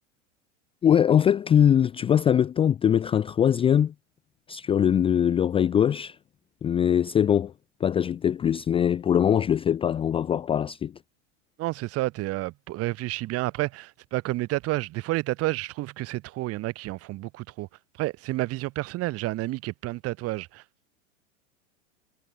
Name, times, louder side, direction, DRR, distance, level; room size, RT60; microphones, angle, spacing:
voice 1, 0.8-3.9 4.5-6.2 6.6-7.5 7.8-10.9, left 9 dB, 15° left, 0.6 m, -22 dB
voice 2, 11.6-17.7 18.0-20.6, right 19 dB, 40° right, 3.7 m, -30 dB
figure-of-eight pair, 95°, 38 cm